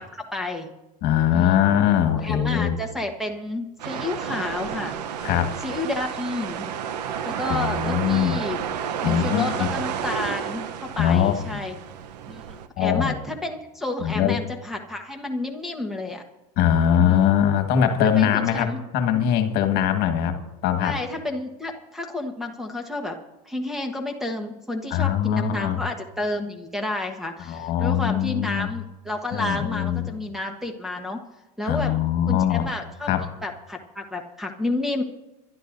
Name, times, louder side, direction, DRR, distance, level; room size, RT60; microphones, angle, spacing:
voice 1, 0.1-0.7 1.3-1.6 2.2-5.3 5.6-6.7 7.2-8.6 9.0-11.8 12.3-16.2 17.0-17.3 18.2-18.8 20.8-23.2 23.4-31.2 31.6-31.9 32.3-33.1 33.4-35.0, left 2 dB, ahead, 0 dB, 1.3 m, -30 dB
voice 2, 1.0-2.8 5.2-5.6 7.5-8.4 9.0-9.7 11.0-11.6 12.8-13.2 14.0-14.4 16.6-18.7 18.9-20.4 20.6-21.0 24.9-25.8 27.4-28.7 29.3-30.1 31.6-32.7 33.1-33.3, left 9 dB, 50° left, 6 dB, 1.6 m, -21 dB
sound 1, 3.8-12.7, right 8 dB, 85° right, 0.8 m, -31 dB
29.5 x 12.0 x 2.6 m, 0.99 s
supercardioid pair, 110°, 20 cm